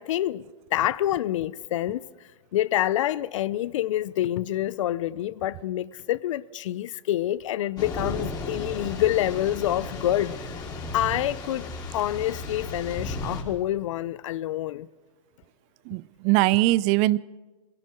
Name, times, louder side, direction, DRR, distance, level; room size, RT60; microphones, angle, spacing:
voice 1, 0.0-2.0 2.5-10.5 10.9-14.9, left 13 dB, 65° left, 0.7 m, -27 dB
Thunder / Rain, 7.8-13.4, left 2 dB, 20° left, 5.4 m, -35 dB
voice 2, 15.9-17.2, right 18 dB, 40° right, 0.6 m, -21 dB
26.0 x 22.5 x 4.5 m
hypercardioid pair, 125°, 17 cm